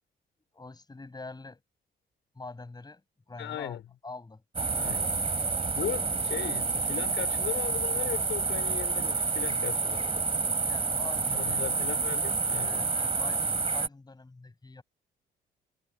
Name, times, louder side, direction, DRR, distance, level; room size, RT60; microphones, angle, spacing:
voice 1, 0.5-1.6 2.4-3.0 3.3-4.4 10.6-11.6 12.7-14.8, left 3 dB, 20° left, 7.2 m, -44 dB
voice 2, 3.4-3.8 4.7-5.2 5.7-10.2 11.3-12.9, left 11 dB, 75° left, 5.8 m, -37 dB
sound 1, 4.5-13.9, right 4 dB, 30° right, 4.1 m, -29 dB
cardioid pair, 90°, 20 cm